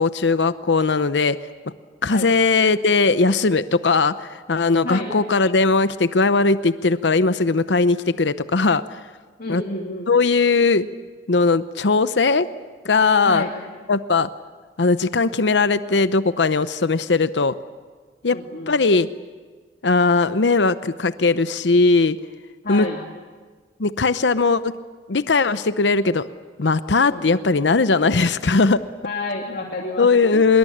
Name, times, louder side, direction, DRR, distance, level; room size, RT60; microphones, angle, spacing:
voice 1, 0.0-1.4 2.0-9.0 9.5-9.6 10.1-10.9 11.3-12.5 12.8-13.5 13.9-14.3 14.8-17.5 18.2-18.4 18.7-19.1 19.8-22.2 22.7-22.9 23.8-24.8 25.1-26.2 26.6-28.8 30.0-30.6, left 4 dB, 80° left, 13 dB, 0.8 m, -19 dB
voice 2, 9.4-10.1 13.2-13.5 18.3-18.7 22.6-23.0 27.1-27.4 29.0-30.4, left 2 dB, 55° left, -1 dB, 2.7 m, -30 dB
25.5 x 22.0 x 8.7 m, 1.5 s
head